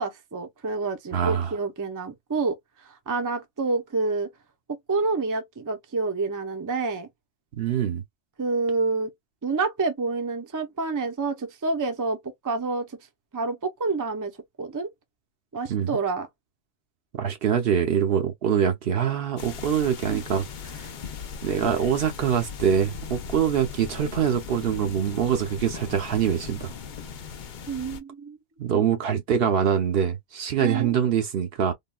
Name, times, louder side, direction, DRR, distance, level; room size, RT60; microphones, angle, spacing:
voice 1, 0.0-2.6 2.8-4.3 4.9-7.1 8.4-9.1 9.4-12.2 12.4-13.0 13.3-14.9 15.5-16.3 20.1-20.2 27.7-28.4 30.6-30.9, right 3 dB, 25° right, 0.5 m, -28 dB
voice 2, 1.1-1.5 7.5-8.0 15.7-16.0 17.2-20.9 21.4-26.7 28.6-31.7, right 8 dB, 60° right, 0.8 m, -24 dB
sound 1, 19.4-28.0, left 6 dB, 60° left, 0.5 m, -38 dB
3.6 x 2.2 x 2.2 m
omnidirectional pair, 1.2 m